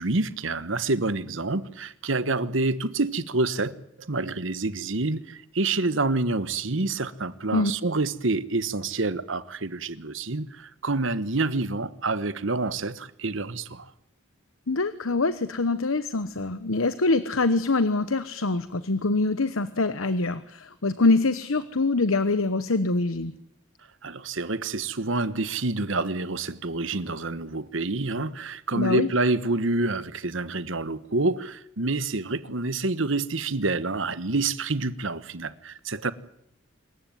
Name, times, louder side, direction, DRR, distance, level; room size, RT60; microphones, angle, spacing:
voice 1, 0.0-3.7 4.0-13.9 24.0-36.1, right 3 dB, 70° right, 1.3 m, -27 dB
voice 2, 14.7-23.3 28.7-29.1, left 3 dB, 85° left, 1.1 m, -24 dB
26.0 x 15.0 x 9.3 m
head